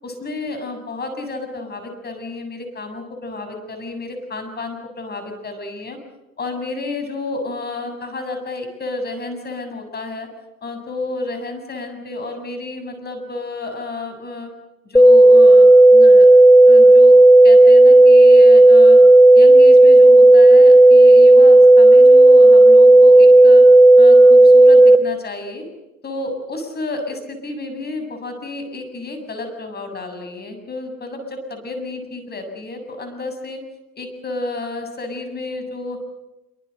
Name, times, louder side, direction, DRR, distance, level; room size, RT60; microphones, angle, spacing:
voice 1, 0.0-6.0 6.4-10.3 10.6-14.5 14.8-16.3 16.7-17.2 17.4-19.0 19.3-23.6 24.0-25.7 26.0-33.6 34.0-36.0, left 2 dB, 20° left, 6 dB, 7.5 m, -31 dB
sound 1, 14.9-25.0, right 2 dB, 5° left, 1.7 m, -8 dB
27.5 x 25.0 x 6.7 m, 0.95 s
hypercardioid pair, 105°, 45 cm